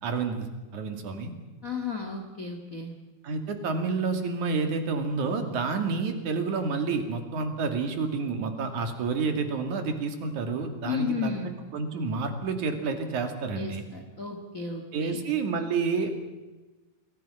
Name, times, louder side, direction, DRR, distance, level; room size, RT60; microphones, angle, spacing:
voice 1, 0.0-1.3 3.2-11.3 11.7-13.8 14.9-16.1, right 4 dB, 50° right, 6 dB, 3.3 m, -29 dB
voice 2, 1.6-2.9 10.8-11.5 13.5-15.2, left 5 dB, 70° left, 3 dB, 0.7 m, -33 dB
29.0 x 21.5 x 5.6 m, 1.2 s
omnidirectional pair, 5.2 m